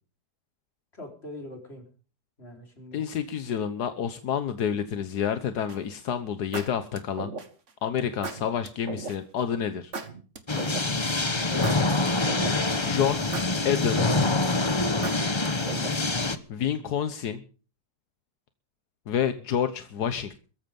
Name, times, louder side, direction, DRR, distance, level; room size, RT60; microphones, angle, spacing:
voice 1, 0.9-1.8 2.4-3.0 16.7-16.9, left 1 dB, 40° left, 3 dB, 4.9 m, -43 dB
voice 2, 2.9-7.3 7.8-9.9 12.8-13.2 13.6-14.2 16.5-17.4 19.1-20.3, left 8 dB, 80° left, 11 dB, 1.6 m, -28 dB
sound 1, 5.7-6.0 6.5-7.7 8.2-9.2 9.9-11.1 11.6-12.8 13.3-14.5 15.0-16.2, right 4 dB, 50° right, 2.0 m, -36 dB
sound 2, 10.5-16.4, left 3 dB, 20° left, 1.1 m, -25 dB
17.0 x 15.0 x 5.3 m, 0.39 s
omnidirectional pair, 1.7 m